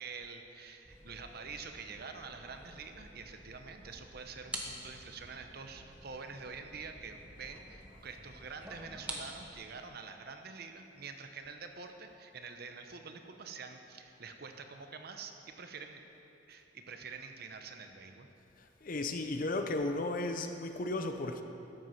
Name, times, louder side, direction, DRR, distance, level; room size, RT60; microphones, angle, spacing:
voice 1, 0.0-16.0 16.5-18.3, right 5 dB, 50° right, 6 dB, 0.8 m, -47 dB
sound 1, 0.8-9.5, right 1 dB, 5° right, 1.0 m, -48 dB
voice 2, 18.8-21.4, left 2 dB, 45° left, 6 dB, 0.7 m, -34 dB
13.5 x 7.9 x 5.8 m, 2.9 s
head